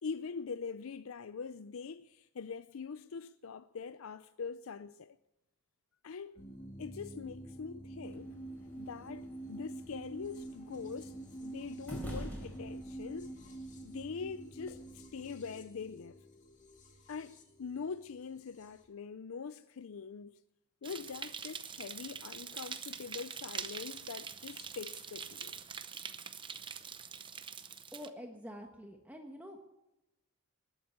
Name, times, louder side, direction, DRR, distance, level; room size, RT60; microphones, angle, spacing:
voice 1, 0.0-5.2 6.0-6.4 6.8-8.4 8.8-13.3 13.8-16.2 17.1-20.3 20.8-25.5, left 5 dB, 70° left, 0.5 m, -43 dB
sound 1, 6.4-18.8, right 2 dB, 35° left, 2.3 m, -47 dB
sound 2, 8.0-14.7, equal, 10° left, 4.7 m, -49 dB
sound 3, 20.8-28.1, right 6 dB, 25° right, 0.7 m, -44 dB
voice 2, 27.9-29.6, equal, 5° right, 1.3 m, -47 dB
20.0 x 8.2 x 8.2 m
head